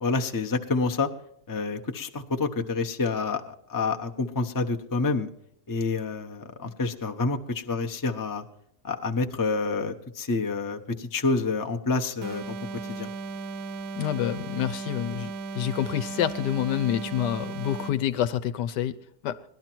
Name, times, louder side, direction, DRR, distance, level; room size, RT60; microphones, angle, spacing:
voice 1, 0.0-1.1 1.5-5.3 5.7-8.4 8.8-13.1, left 3 dB, 20° left, 4 dB, 0.6 m, -28 dB
sound 1, 12.2-18.1, right 4 dB, 70° right, 1.3 m, -36 dB
voice 2, 13.9-18.9 19.2-19.4, left 11 dB, 90° left, 11 dB, 1.5 m, -27 dB
18.5 x 12.0 x 4.5 m, 0.74 s
omnidirectional pair, 1.8 m